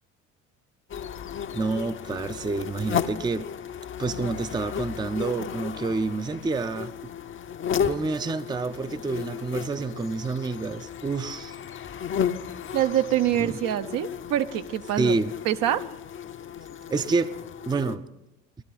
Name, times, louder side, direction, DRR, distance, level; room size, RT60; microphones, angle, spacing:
sound 1, 0.9-18.0, left 8 dB, 30° left, 0.7 m, -34 dB
voice 1, 1.5-3.5 4.0-7.0 7.8-11.5 13.4-13.6 15.0-15.3 16.9-17.3 17.7-18.1, right 3 dB, 10° right, 11 dB, 0.6 m, -28 dB
voice 2, 12.7-15.1 15.4-15.8, right 12 dB, 55° right, 10 dB, 0.8 m, -25 dB
18.5 x 12.5 x 4.1 m, 0.97 s
hypercardioid pair, 60°, 39 cm